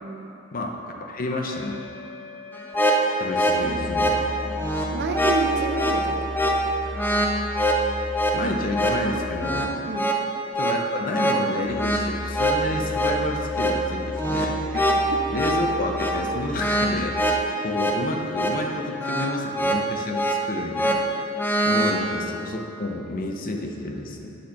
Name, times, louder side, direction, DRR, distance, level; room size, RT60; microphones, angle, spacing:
voice 1, 0.0-0.3 4.9-6.4 9.9-10.1 14.7-14.8 15.1-15.2 21.7-21.9, right 3 dB, 50° right, 4 dB, 0.6 m, -29 dB
voice 2, 0.5-1.8 3.2-4.3 8.3-9.8 10.6-14.6 15.3-21.0 21.7-24.4, left 2 dB, 45° left, 2 dB, 0.7 m, -30 dB
sound 1, 1.4-17.4, left 1 dB, 65° left, 1.0 m, -36 dB
sound 2, 2.5-22.0, right 1 dB, 10° left, 0.5 m, -24 dB
7.9 x 4.3 x 5.8 m, 3.0 s
head